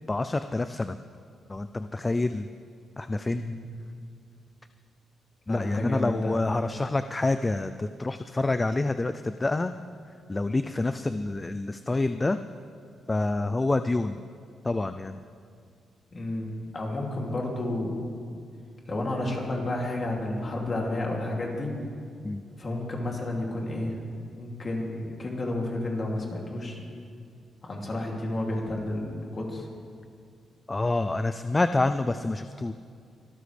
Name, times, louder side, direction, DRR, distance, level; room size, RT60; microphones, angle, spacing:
voice 1, 0.1-1.0 1.5-2.5 3.0-3.4 5.5-9.7 10.3-12.4 13.1-14.2 14.6-15.2 22.2-22.4 30.7-32.7, left 2 dB, 20° left, 10 dB, 0.4 m, -27 dB
voice 2, 3.3-3.6 5.5-6.4 16.1-18.0 18.9-21.8 22.5-24.0 24.4-26.8 27.6-29.7, left 1 dB, 35° left, -1 dB, 2.7 m, -31 dB
24.5 x 13.0 x 3.3 m, 2.3 s
cardioid pair, 120°, 0 cm